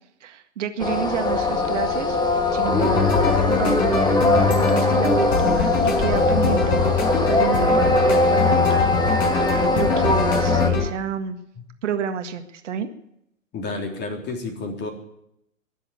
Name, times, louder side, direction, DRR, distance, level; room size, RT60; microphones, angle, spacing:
voice 1, 0.2-2.2 2.5-3.2 3.5-8.9 9.7-11.4 11.8-12.9, right 8 dB, 65° right, 7 dB, 1.9 m, -29 dB
sound 1, 0.8-10.7, left 2 dB, 10° left, 1.8 m, -21 dB
sound 2, 2.7-10.9, left 6 dB, 45° left, 5.6 m, -23 dB
voice 2, 13.5-14.9, left 3 dB, 25° left, 3 dB, 3.6 m, -30 dB
22.0 x 7.6 x 8.4 m, 0.78 s
figure-of-eight pair, 110°, 39 cm